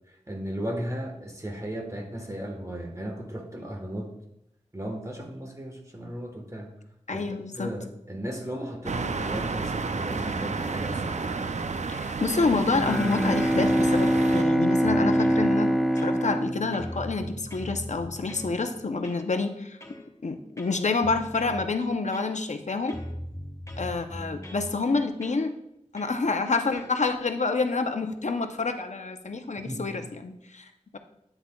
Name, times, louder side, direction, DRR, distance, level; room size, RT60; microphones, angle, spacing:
voice 1, 0.3-4.1 4.7-6.7 7.1-11.7 29.6-30.0, equal, 25° right, 2 dB, 1.3 m, -35 dB
voice 2, 7.1-7.7 11.9-19.8 20.2-23.0 23.8-25.5 25.9-31.0, left 3 dB, 70° left, 7 dB, 0.7 m, -28 dB
sound 1, 8.8-14.4, right 4 dB, 70° right, 0.4 m, -31 dB
Bowed string instrument, 12.7-17.5, equal, ahead, 0.6 m, -24 dB
sound 2, 14.8-15.4 16.0-16.5 16.7-18.5 19.0-19.3 19.8-20.1 20.6-21.6 22.1-22.6 22.9-24.7 25.2-25.4 26.0-26.2 26.7-27.0, equal, 25° left, 1.0 m, -40 dB
9.1 x 8.1 x 2.3 m, 0.79 s
wide cardioid pair, 60°, 13 cm